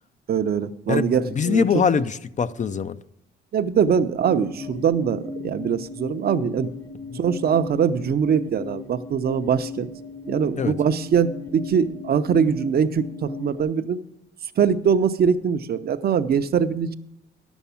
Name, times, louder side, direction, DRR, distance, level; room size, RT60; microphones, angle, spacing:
voice 1, 0.3-1.6 3.5-6.7 7.1-9.9 10.3-14.0 14.6-16.9, right 7 dB, 50° right, 0.7 m, -22 dB
voice 2, 0.9-3.0 7.1-7.2 10.6-10.7, left 6 dB, 40° left, 0.5 m, -23 dB
sound 1, 4.2-13.6, left 4 dB, 55° left, 2.0 m, -37 dB
11.0 x 7.1 x 7.0 m
cardioid pair, 90°, 20 cm